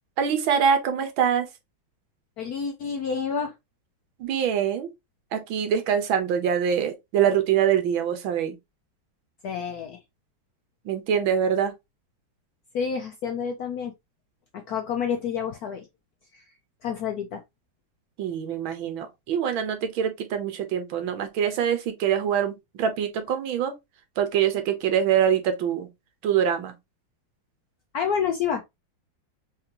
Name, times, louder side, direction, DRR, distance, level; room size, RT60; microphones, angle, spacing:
voice 1, 0.2-1.5 4.2-4.9 5.3-8.6 10.8-11.7 18.2-23.7 24.2-25.9 26.2-26.7, right 8 dB, 75° right, 1.7 m, -24 dB
voice 2, 2.4-3.5 9.4-10.0 12.7-13.9 14.5-15.9 16.3-16.4 16.8-17.4 27.9-28.6, left 7 dB, 70° left, 0.9 m, -29 dB
4.3 x 3.7 x 2.8 m
omnidirectional pair, 2.2 m